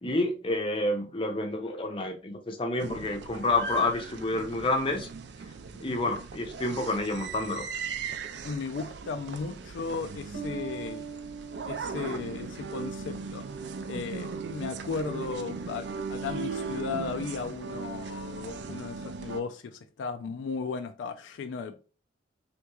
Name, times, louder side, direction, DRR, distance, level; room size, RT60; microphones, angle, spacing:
voice 1, 0.0-5.1 5.8-7.7, left 2 dB, 30° left, 0.6 m, -29 dB
sound 1, 2.8-19.4, right 5 dB, 65° right, 0.4 m, -38 dB
voice 2, 8.4-11.0 11.7-13.4 13.8-21.8, left 5 dB, 80° left, 0.3 m, -36 dB
sound 2, 10.3-13.7, right 5 dB, 80° right, 1.0 m, -42 dB
3.5 x 2.9 x 2.3 m
head